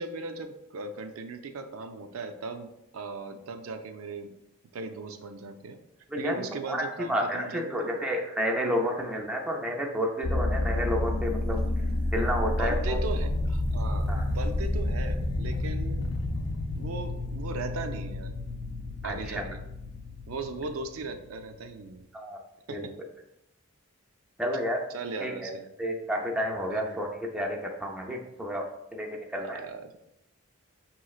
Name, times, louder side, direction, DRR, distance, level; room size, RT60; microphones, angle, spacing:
voice 1, 0.0-4.3 4.7-5.8 6.2-8.0 12.4-16.1 16.7-18.4 19.0-19.6 20.3-22.1 22.7-22.9 24.9-25.7 26.7-27.0 29.4-30.1, right 3 dB, 75° right, 7 dB, 0.4 m, -38 dB
voice 2, 6.1-11.6 12.1-13.0 14.1-14.3 19.0-19.4 22.1-22.4 22.7-22.9 24.4-24.8 25.2-25.5 25.8-29.6, equal, 5° right, 0 dB, 0.4 m, -31 dB
sound 1, 10.2-21.7, left 2 dB, 85° left, 0.6 m, -30 dB
5.5 x 3.0 x 2.3 m, 0.85 s
head